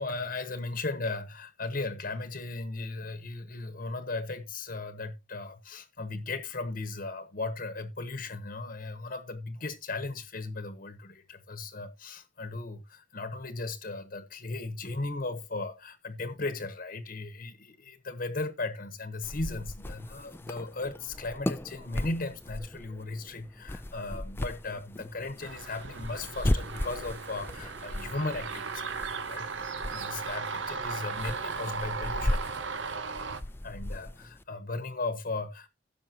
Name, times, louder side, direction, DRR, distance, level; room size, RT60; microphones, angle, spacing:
voice 1, 0.0-32.4 33.6-35.7, left 3 dB, 50° left, 1.1 m, -37 dB
sound 1, 19.2-34.4, left 1 dB, 10° left, 0.5 m, -37 dB
sound 2, 25.4-33.4, right 5 dB, 80° right, 0.8 m, -37 dB
16.0 x 6.7 x 3.0 m
head